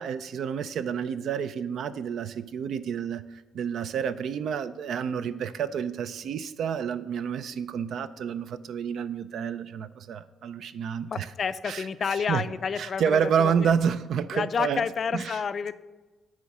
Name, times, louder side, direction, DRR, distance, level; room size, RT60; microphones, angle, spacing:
voice 1, 0.0-11.3 11.6-12.5 12.8-14.8 15.1-15.4, right 7 dB, 70° right, 13 dB, 0.4 m, -29 dB
voice 2, 11.1-13.7 14.3-15.7, left 6 dB, 45° left, 14 dB, 0.4 m, -29 dB
9.4 x 3.6 x 6.0 m, 1.2 s
cardioid pair, 90°, 0 cm